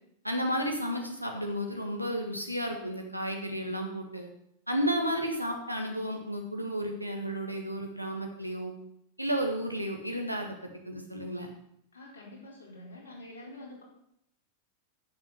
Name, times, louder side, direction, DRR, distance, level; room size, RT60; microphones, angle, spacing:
voice 1, 0.2-4.3 4.7-8.7 9.2-10.6 10.8-11.5, equal, 90° right, 3 dB, 1.9 m, -32 dB
voice 2, 11.9-13.8, left 1 dB, 70° left, -3 dB, 4.3 m, -47 dB
9.5 x 7.1 x 7.7 m, 0.74 s
figure-of-eight pair, 90°, 0 cm